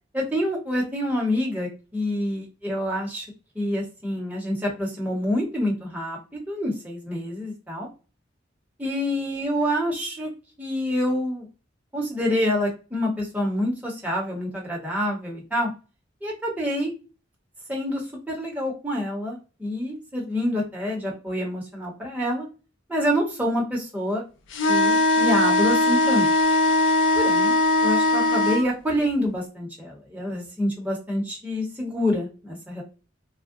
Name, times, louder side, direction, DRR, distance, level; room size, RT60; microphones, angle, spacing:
voice 1, 0.1-3.2 3.5-7.9 8.8-10.3 10.6-11.5 11.9-15.7 16.2-16.9 17.7-18.0 18.3-22.5 22.9-24.2 24.7-26.3 27.1-27.5 27.8-32.8, equal, 10° right, -3 dB, 1.0 m, -27 dB
sound 1, 24.5-28.6, left 2 dB, 65° left, 0.5 m, -20 dB
3.5 x 2.2 x 2.4 m, 0.33 s
head